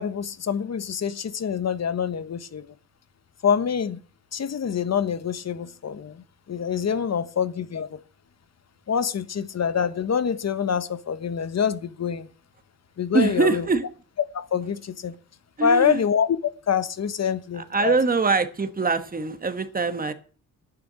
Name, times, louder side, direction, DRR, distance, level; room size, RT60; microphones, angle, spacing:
voice 1, 0.0-2.7 3.4-4.0 4.3-6.2 6.5-8.0 8.9-12.3 13.0-13.6 14.3-15.1 15.6-16.3 16.7-18.0, left 7 dB, 50° left, 1.0 m, -25 dB
voice 2, 13.1-13.8 15.6-16.0 17.6-20.1, right 4 dB, 25° right, 1.3 m, -23 dB
9.9 x 6.9 x 9.0 m
wide cardioid pair, 130°, 34 cm